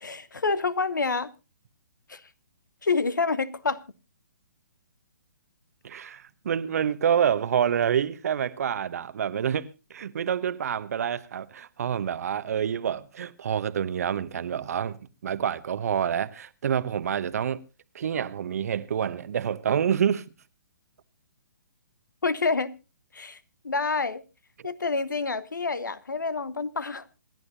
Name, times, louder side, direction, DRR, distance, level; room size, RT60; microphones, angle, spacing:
voice 1, 0.0-1.3 2.1-2.2 2.8-3.8 22.2-22.7 23.1-23.4 23.6-24.2 24.6-27.1, left 4 dB, 80° left, 1.1 m, -27 dB
voice 2, 5.8-15.0 15.2-17.6 17.9-20.3 24.6-24.7, right 8 dB, 55° right, 1.0 m, -27 dB
27.0 x 11.0 x 2.7 m
figure-of-eight pair, 130°, 10 cm